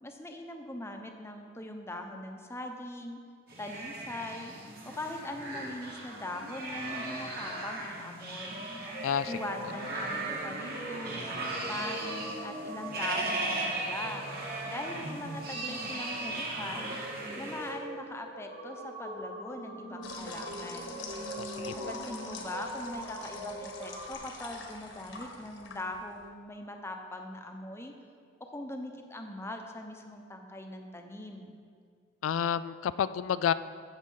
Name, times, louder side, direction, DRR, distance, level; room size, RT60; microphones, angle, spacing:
voice 1, 0.0-3.2 3.6-4.5 4.8-8.7 9.3-11.3 11.7-14.3 14.7-17.0 17.4-21.0 21.9-27.9 28.5-31.6, left 1 dB, 15° left, 4 dB, 0.9 m, -41 dB
sound 1, 3.5-17.7, right 2 dB, 50° right, 2.5 m, -37 dB
sound 2, 8.5-24.1, right 1 dB, 80° right, 3.0 m, -42 dB
voice 2, 9.0-9.4 21.4-21.9 32.2-33.5, left 8 dB, 85° left, 15 dB, 0.3 m, -30 dB
sound 3, 20.0-26.3, left 3 dB, 70° left, 1.5 m, -45 dB
14.5 x 6.3 x 5.6 m, 2.2 s
head